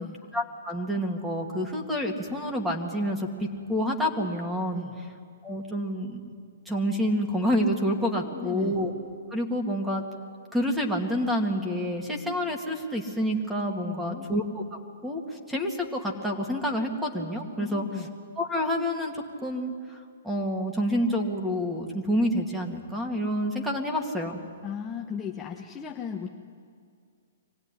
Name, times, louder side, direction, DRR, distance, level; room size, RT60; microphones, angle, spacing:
voice 1, 0.3-4.9 5.4-6.2 6.7-8.9 9.3-10.0 10.5-14.4 15.0-17.9 18.4-24.4, equal, 5° right, 1 dB, 2.3 m, -28 dB
voice 2, 8.1-8.8 13.8-14.3 17.6-18.1 24.6-26.3, left 7 dB, 20° left, -1 dB, 1.2 m, -36 dB
24.5 x 16.5 x 9.9 m, 2.2 s
hypercardioid pair, 140°, 0 cm